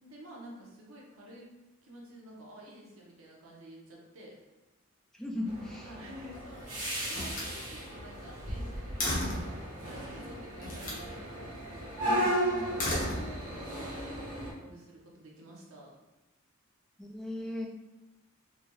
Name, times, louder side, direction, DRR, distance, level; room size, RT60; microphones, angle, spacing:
voice 1, 0.0-4.4 5.8-11.4 12.1-12.8 13.6-14.2 14.5-16.0, equal, 90° right, -2 dB, 0.8 m, -50 dB
voice 2, 5.2-5.9 12.1-12.8 17.0-17.7, left 1 dB, ahead, -1 dB, 0.3 m, -37 dB
sound 1, 5.4-14.5, right 1 dB, 65° right, 1.2 m, -36 dB
Slam, 6.0-6.6 7.1-9.6 10.6-11.1 12.6-13.7, left 1 dB, 40° left, 0.8 m, -35 dB
3.3 x 2.2 x 2.9 m, 1.0 s
head